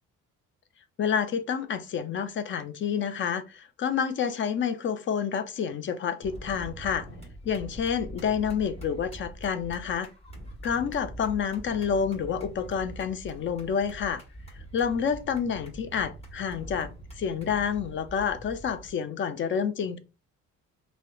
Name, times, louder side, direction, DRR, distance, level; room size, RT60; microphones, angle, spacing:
voice 1, 1.0-7.1 7.5-10.1 10.6-14.2 14.7-16.9 17.2-20.0, left 7 dB, 40° left, 0.4 m, -29 dB
sound 1, 6.2-18.9, right 1 dB, 20° left, 1.3 m, -44 dB
2.7 x 2.1 x 2.2 m
cardioid pair, 90°, 30 cm